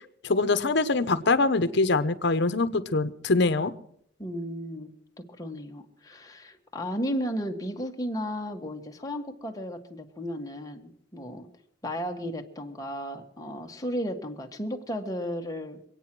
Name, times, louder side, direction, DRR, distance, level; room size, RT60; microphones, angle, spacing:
voice 1, 0.2-3.7, left 3 dB, 60° left, 11 dB, 0.9 m, -24 dB
voice 2, 4.2-4.9 5.2-11.5 11.8-15.8, equal, 20° left, 3 dB, 1.5 m, -34 dB
24.0 x 8.9 x 6.1 m, 0.68 s
head